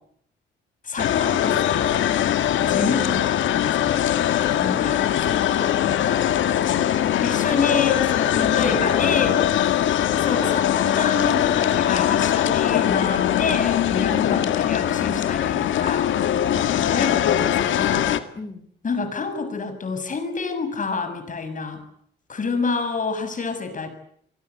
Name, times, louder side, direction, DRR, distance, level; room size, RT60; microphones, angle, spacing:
voice 1, 0.8-2.0 2.6-4.1 4.6-5.0 7.2-9.4 10.1-16.1 16.9-18.1 18.8-21.8 22.3-23.9, left 4 dB, 40° left, 9 dB, 6.8 m, -27 dB
sound 1, 1.0-18.2, left 11 dB, 75° left, 1.9 m, -21 dB
voice 2, 4.5-7.2 8.3-9.5 11.2-11.5 14.3-14.5 16.5-17.2 18.3-18.6, left 3 dB, 20° left, 14 dB, 3.7 m, -37 dB
27.0 x 24.0 x 8.3 m, 0.68 s
cardioid pair, 90°, 20 cm